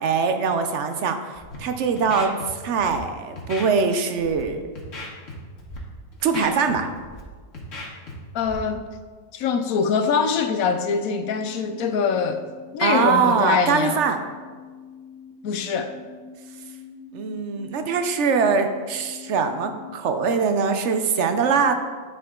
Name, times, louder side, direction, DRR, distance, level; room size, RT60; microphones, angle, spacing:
voice 1, 0.0-1.2 1.6-4.6 6.2-6.9 12.8-14.2 17.1-21.7, right 5 dB, 60° right, 7 dB, 0.8 m, -22 dB
Scratching (performance technique), 1.3-1.6 2.0-2.5 2.8-3.0 3.4-3.7 4.2-4.4 4.8-5.3 5.6-5.8 6.1-7.2 7.5-8.1 8.4-8.6, left 3 dB, 55° left, 1.7 m, -36 dB
voice 2, 8.3-8.8 9.3-12.4 12.7-14.0 15.4-15.9, left 6 dB, 70° left, 8 dB, 1.0 m, -23 dB
sound 1, 10.3-19.9, left 5 dB, 10° right, 1.4 m, -45 dB
11.0 x 5.0 x 3.7 m, 1.5 s
omnidirectional pair, 1.6 m